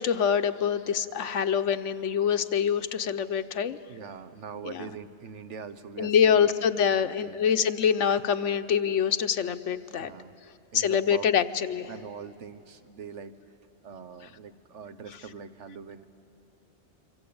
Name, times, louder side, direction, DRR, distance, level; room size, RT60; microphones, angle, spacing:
voice 1, 0.0-3.8 4.6-4.8 6.0-10.1 10.7-11.9, left 8 dB, 90° left, 9 dB, 1.1 m, -25 dB
voice 2, 3.9-6.5 6.8-7.4 10.0-10.3 10.7-11.3 11.9-13.3 13.8-16.1, right 6 dB, 80° right, 10 dB, 1.3 m, -42 dB
27.0 x 24.5 x 8.7 m, 2.6 s
omnidirectional pair, 1.2 m